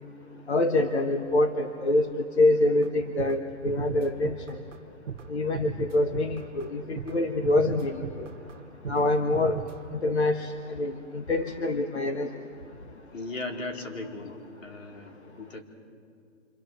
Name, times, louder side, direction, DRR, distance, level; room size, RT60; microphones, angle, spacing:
voice 1, 0.5-2.1 2.4-4.4 5.3-8.3 8.9-9.6 10.0-12.3, left 2 dB, 55° left, 6 dB, 1.4 m, -25 dB
sound 1, 2.8-2.9 3.2-3.4 3.7-4.8 5.1-5.3 5.5-6.7 7.0-7.2 7.4-8.6 8.8-9.1 9.3-9.9, right 7 dB, 70° right, 1.4 m, -37 dB
voice 2, 13.1-14.4 14.6-15.6, left 2 dB, 80° left, 2 dB, 4.2 m, -37 dB
27.0 x 26.0 x 6.9 m, 2.3 s
hypercardioid pair, 175°, 39 cm